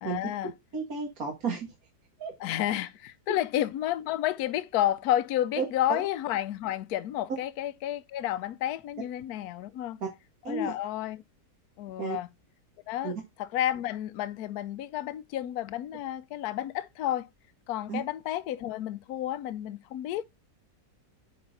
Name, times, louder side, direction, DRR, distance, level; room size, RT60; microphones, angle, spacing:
voice 1, 0.0-0.5 2.4-10.0 10.5-11.2 11.8-12.3 12.9-13.1 13.4-17.3 17.7-20.2, left 12 dB, 70° left, 1.1 m, -31 dB
voice 2, 0.7-1.7 2.2-2.3 5.6-5.7 5.9-6.0 10.0-10.1 10.4-10.7 12.0-12.2 13.0-13.1 17.9-18.0, right 4 dB, 55° right, 2.1 m, -32 dB
9.7 x 4.3 x 4.0 m
omnidirectional pair, 1.8 m